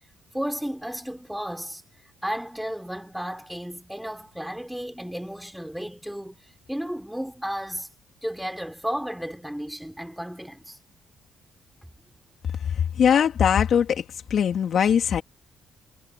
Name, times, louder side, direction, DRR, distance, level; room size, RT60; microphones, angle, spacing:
voice 1, 0.3-1.8 2.2-6.4 6.7-7.9 8.2-10.8, equal, 5° right, 5.7 m, -33 dB
voice 2, 12.8-14.0 14.3-15.2, left 8 dB, 60° left, 3.1 m, -21 dB
cardioid pair, 90°, 0 cm